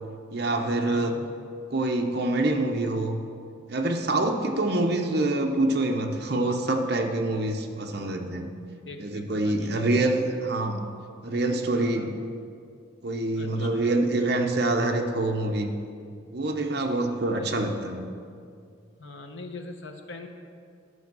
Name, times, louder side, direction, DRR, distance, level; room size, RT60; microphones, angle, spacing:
voice 1, 0.3-1.2 1.7-3.2 3.7-8.5 9.0-10.8 11.2-12.1 13.0-15.7 16.3-18.1, right 2 dB, 50° right, 4 dB, 0.8 m, -26 dB
voice 2, 0.8-1.2 8.9-10.2 11.7-12.1 13.4-14.0 17.3-17.5 19.0-20.3, left 3 dB, 70° left, 4 dB, 1.0 m, -42 dB
11.0 x 6.2 x 6.0 m, 2.3 s
head